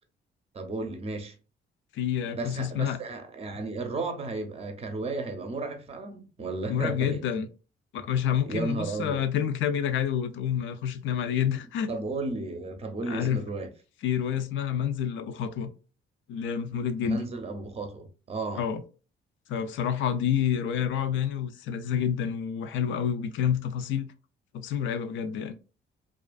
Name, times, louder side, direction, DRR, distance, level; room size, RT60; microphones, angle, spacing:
voice 1, 0.5-1.3 2.3-7.2 8.5-9.2 11.9-13.7 17.0-18.7, right 3 dB, 30° right, 0.6 m, -34 dB
voice 2, 1.9-3.0 6.7-7.5 7.9-11.9 13.1-13.4 14.0-15.7 16.3-17.2 18.6-18.8 19.5-24.1 24.5-25.6, left 8 dB, 75° left, 0.4 m, -28 dB
2.4 x 2.4 x 2.3 m
cardioid pair, 90°, 20 cm